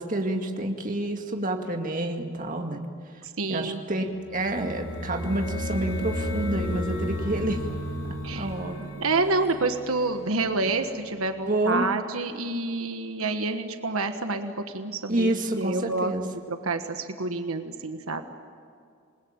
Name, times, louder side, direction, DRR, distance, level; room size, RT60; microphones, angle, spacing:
voice 1, 0.0-2.9 3.5-7.8 8.3-8.9 11.4-11.9 15.1-16.2, right 1 dB, 40° right, 3 dB, 2.1 m, -28 dB
voice 2, 3.2-3.8 8.2-8.5 9.0-18.2, right 3 dB, 80° right, 7 dB, 1.4 m, -28 dB
sound 1, 4.2-10.9, left 1 dB, 65° left, 7.6 m, -33 dB
27.5 x 21.0 x 8.9 m, 2.3 s
head